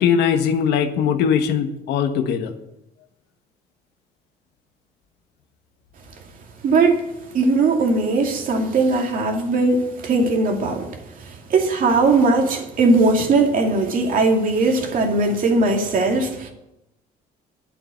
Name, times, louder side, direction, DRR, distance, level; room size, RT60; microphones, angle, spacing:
voice 1, 0.0-2.5, left 7 dB, 80° left, 7 dB, 1.3 m, -20 dB
voice 2, 6.6-7.1 7.3-10.9 11.2-16.5, right 3 dB, 55° right, 2 dB, 2.4 m, -19 dB
9.8 x 7.6 x 7.8 m, 0.89 s
cardioid pair, 110°, 17 cm